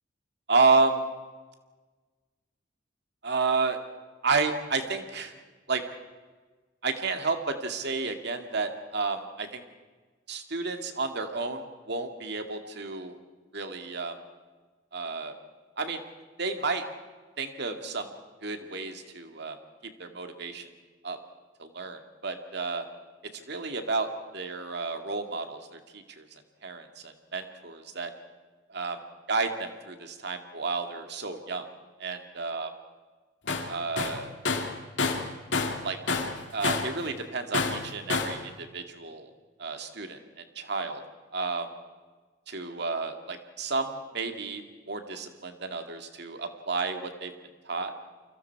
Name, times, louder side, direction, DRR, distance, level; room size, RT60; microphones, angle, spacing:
voice 1, 0.5-1.1 3.2-3.8 4.2-5.3 5.7-5.8 6.8-9.6 10.3-13.1 13.5-14.2 14.9-15.4 15.8-16.0 16.4-16.8 17.4-18.1 18.4-19.6 20.0-20.7 21.0-21.2 21.6-22.8 23.3-28.1 28.7-29.0 29.3-31.7 32.0-32.7 33.7-34.3 35.8-36.0 36.5-39.3 39.6-41.0 41.3-41.7 42.5-47.3 47.6-47.9, right 4 dB, 65° right, 6 dB, 2.3 m, -31 dB
Tools, 33.5-33.7 34.0-35.8 36.1-37.0 37.5-38.4, left 4 dB, 70° left, 2.4 m, -28 dB
29.5 x 24.5 x 4.8 m, 1.3 s
head